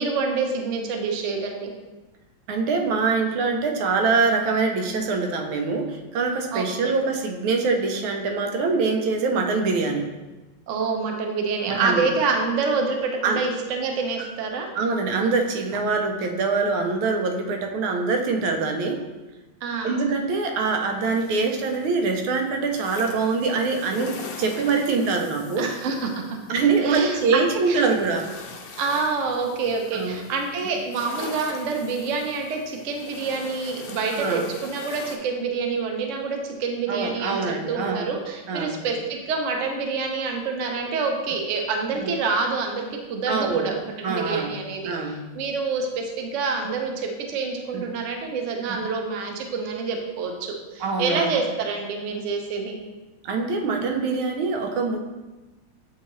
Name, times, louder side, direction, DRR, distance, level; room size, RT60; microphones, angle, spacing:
voice 1, 0.0-1.7 6.5-6.7 10.7-14.7 19.6-20.1 25.6-26.4 26.8-27.8 28.8-52.8, right 4 dB, 65° right, 2 dB, 0.7 m, -27 dB
voice 2, 2.5-10.1 11.7-12.1 13.2-13.4 14.7-19.0 19.8-25.7 26.5-28.3 29.9-30.2 34.1-34.5 36.9-38.1 38.5-38.8 41.9-42.1 43.3-43.7 44.0-44.5 44.8-45.2 47.7-47.8 50.8-51.3 53.2-55.0, right 4 dB, 85° right, 4 dB, 1.6 m, -24 dB
sound 1, 21.0-35.2, left 5 dB, 70° left, 0.8 m, -42 dB
8.1 x 3.8 x 3.0 m, 1.1 s
omnidirectional pair, 2.2 m